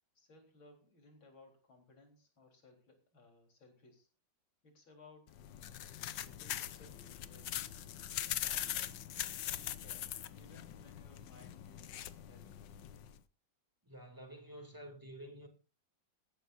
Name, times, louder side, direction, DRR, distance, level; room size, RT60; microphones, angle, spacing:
voice 1, 0.1-4.1 4.6-5.4 6.2-7.9 8.4-9.1 9.4-12.6, left 2 dB, 90° left, 4.8 m, -61 dB
sound 1, 5.3-13.2, left 11 dB, 70° left, 1.4 m, -42 dB
voice 2, 13.8-15.5, right 1 dB, 10° right, 2.7 m, -50 dB
18.5 x 15.0 x 2.6 m
omnidirectional pair, 2.1 m